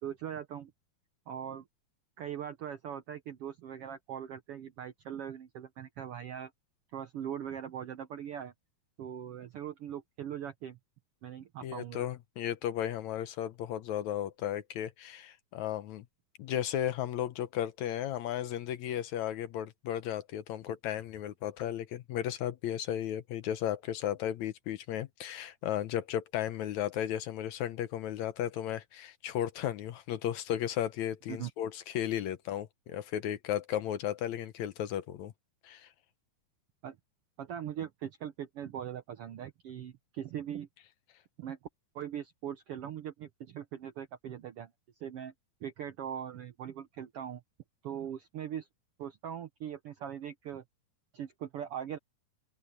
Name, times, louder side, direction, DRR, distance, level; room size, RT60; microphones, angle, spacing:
voice 1, 0.0-0.7 1.3-1.6 2.2-6.5 6.9-8.5 9.0-10.8 11.2-12.1 31.3-31.5 36.8-37.0 37.4-40.7 41.4-41.6 41.9-44.7 45.0-45.3 45.6-47.4 47.8-48.7 49.0-50.6 51.1-52.0, right 9 dB, 75° right, 1.3 m, -40 dB
voice 2, 11.6-16.1 16.4-35.3 35.6-35.9, left 11 dB, 70° left, 2.0 m, -35 dB
open air
omnidirectional pair, 3.7 m